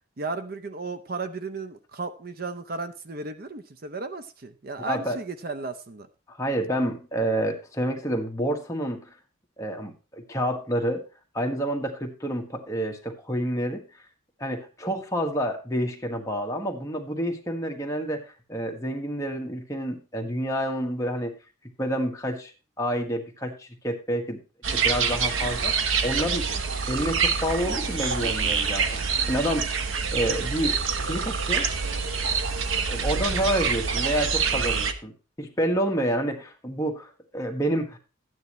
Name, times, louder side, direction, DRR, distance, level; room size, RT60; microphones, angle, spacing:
voice 1, 0.2-6.1, right 3 dB, 45° right, 10 dB, 0.6 m, -34 dB
voice 2, 4.9-5.2 6.3-9.1 9.6-11.0 11.3-13.8 14.4-21.3 21.8-22.5 22.8-24.4 24.7-25.7 26.0-26.4 26.9-29.7 30.1-30.7 31.0-31.7 32.8-35.1 35.4-38.0, equal, 15° left, 2 dB, 1.5 m, -28 dB
sound 1, 24.6-34.9, right 5 dB, 80° right, 1.0 m, -26 dB
13.0 x 9.4 x 3.1 m, 0.33 s
head